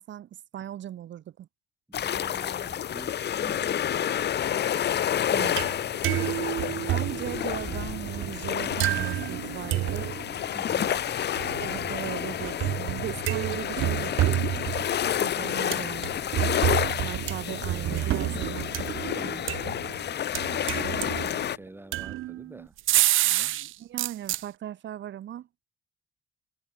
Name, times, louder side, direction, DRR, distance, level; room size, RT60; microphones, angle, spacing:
voice 1, 0.0-1.5 5.3-5.6 6.8-10.1 10.8-11.0 11.6-14.1 15.2-16.1 17.1-18.7 20.6-20.8 23.6-25.5, right 11 dB, 70° right, 1.9 m, -38 dB
sound 1, 1.9-21.6, left 10 dB, 60° left, 1.2 m, -30 dB
voice 2, 1.9-4.3 5.6-6.2 10.5-11.0 14.0-14.2 19.1-19.6 20.8-23.6, right 1 dB, 10° right, 6.8 m, -48 dB
sound 2, 5.3-5.8 6.0-10.3 11.4-15.2 15.7-20.0 20.3-21.4 21.9-23.7 24.0-24.4, right 15 dB, 85° right, 1.0 m, -29 dB
cardioid pair, 90°, 20 cm